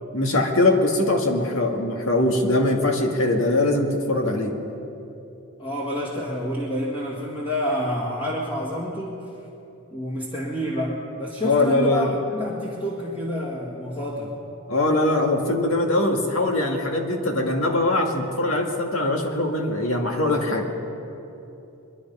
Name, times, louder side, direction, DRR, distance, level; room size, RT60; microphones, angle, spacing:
voice 1, 0.1-4.5 11.4-12.1 14.7-20.7, left 2 dB, 85° left, 3 dB, 1.8 m, -22 dB
voice 2, 5.6-9.2 9.9-14.4, equal, 25° left, -6 dB, 1.8 m, -28 dB
23.5 x 11.5 x 5.5 m, 2.9 s
head